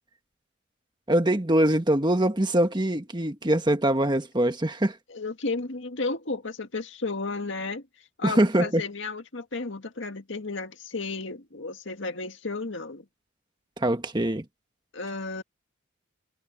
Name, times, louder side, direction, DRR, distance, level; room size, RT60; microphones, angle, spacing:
voice 1, 1.1-5.0 8.2-8.8 13.8-14.4, right 1 dB, 20° right, 1.4 m, -23 dB
voice 2, 5.1-7.8 8.2-13.1 14.9-15.4, left 3 dB, 65° left, 1.9 m, -33 dB
head